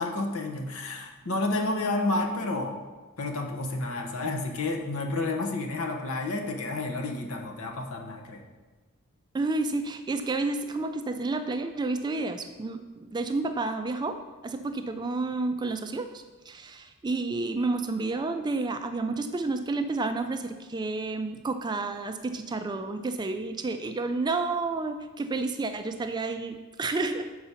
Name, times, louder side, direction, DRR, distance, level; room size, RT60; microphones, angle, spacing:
voice 1, 0.0-2.8 3.2-8.5, left 2 dB, 65° left, 3 dB, 1.0 m, -30 dB
voice 2, 9.3-27.4, right 3 dB, 20° right, 8 dB, 0.3 m, -30 dB
6.9 x 4.7 x 5.6 m, 1.2 s
head